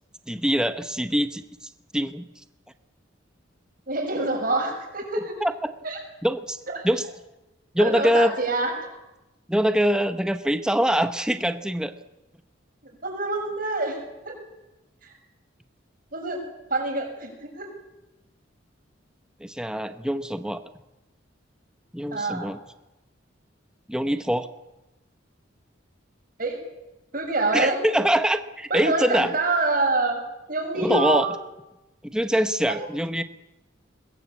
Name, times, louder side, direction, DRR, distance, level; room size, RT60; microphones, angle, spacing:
voice 1, 0.3-1.4 1.9-2.3 5.4-5.7 6.2-6.6 6.8-7.1 7.7-8.3 9.5-11.9 19.4-20.6 21.9-22.6 23.9-24.5 27.5-29.3 30.7-31.3 32.0-33.2, equal, 5° right, 9 dB, 0.9 m, -23 dB
voice 2, 3.9-5.2 5.8-6.0 6.7-6.9 7.8-8.7 13.0-14.0 14.2-14.4 15.0-15.1 16.1-16.4 16.7-17.7 22.1-22.6 26.4-26.6 27.1-27.8 28.7-30.2 30.5-31.3 32.7-32.9, right 2 dB, 45° right, 3 dB, 6.6 m, -26 dB
21.5 x 21.0 x 8.5 m, 0.99 s
head